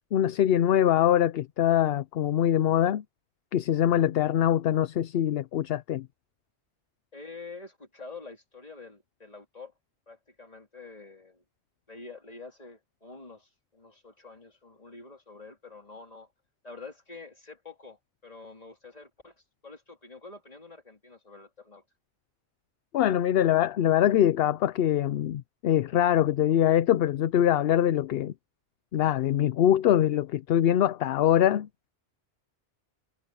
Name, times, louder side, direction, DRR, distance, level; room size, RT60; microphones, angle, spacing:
voice 1, 0.1-3.0 3.5-6.1 22.9-28.3 28.9-31.7, left 11 dB, 65° left, 0.7 m, -23 dB
voice 2, 7.1-9.7 10.1-11.4 11.9-16.3 16.6-19.4 19.6-21.8, left 3 dB, 35° left, 3.5 m, -47 dB
omnidirectional pair, 1.2 m